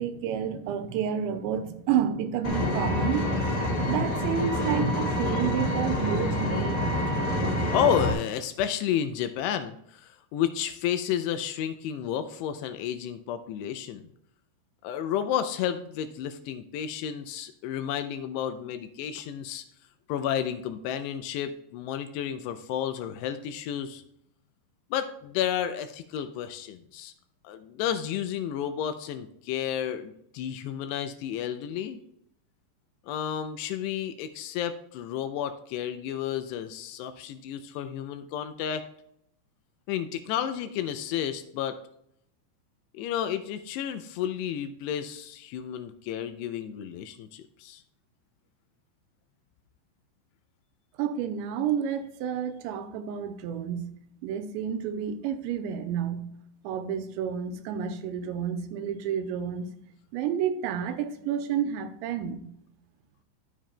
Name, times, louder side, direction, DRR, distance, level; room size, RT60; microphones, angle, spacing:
voice 1, 0.0-6.9 51.0-53.9 54.2-56.3 56.6-59.7 60.1-62.5, right 8 dB, 85° right, 2.8 m, -30 dB
Vehicle, 2.4-8.1, left 1 dB, 35° left, 1.8 m, -27 dB
voice 2, 7.4-14.0 14.8-19.6 20.1-24.0 24.9-27.1 27.4-32.0 33.1-38.8 39.9-41.8 42.9-47.8, left 9 dB, 85° left, 2.5 m, -31 dB
12.0 x 7.4 x 2.2 m
omnidirectional pair, 5.2 m